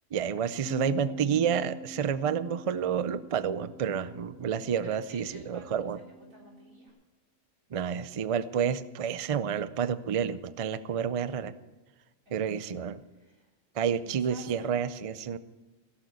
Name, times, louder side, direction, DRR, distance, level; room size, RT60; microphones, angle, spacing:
voice 1, 0.1-6.0 7.7-11.5 12.3-13.0 13.7-15.4, right 8 dB, 65° right, 14 dB, 0.3 m, -29 dB
Bass guitar, 0.7-6.9, left 2 dB, 65° left, 1.2 m, -45 dB
voice 2, 4.8-6.9 12.2-13.5 14.0-14.8, right 1 dB, 90° right, -2 dB, 4.2 m, -52 dB
16.5 x 7.1 x 8.1 m, 1.2 s
omnidirectional pair, 1.4 m